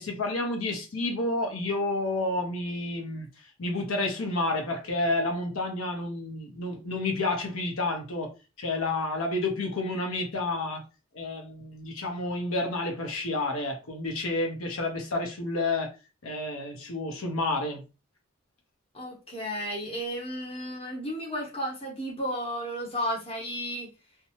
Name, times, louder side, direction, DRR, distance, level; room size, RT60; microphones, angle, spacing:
voice 1, 0.0-10.8 11.1-15.9 16.2-17.8, left 2 dB, 80° left, 0.8 m, -30 dB
voice 2, 18.9-23.9, equal, 30° left, 0.8 m, -33 dB
2.7 x 2.2 x 2.9 m
head